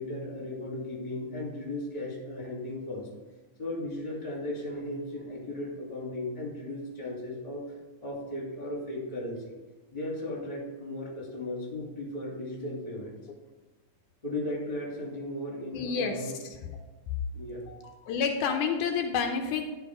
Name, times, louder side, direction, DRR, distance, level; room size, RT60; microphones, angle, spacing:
voice 1, 0.0-3.1 3.6-7.7 8.0-9.6 9.9-13.2 14.2-16.4 17.3-17.7, left 1 dB, 15° left, -4 dB, 2.4 m, -36 dB
voice 2, 15.7-16.3 17.7-19.7, left 6 dB, 80° left, 4 dB, 2.2 m, -29 dB
11.5 x 4.6 x 4.8 m, 1.2 s
omnidirectional pair, 3.6 m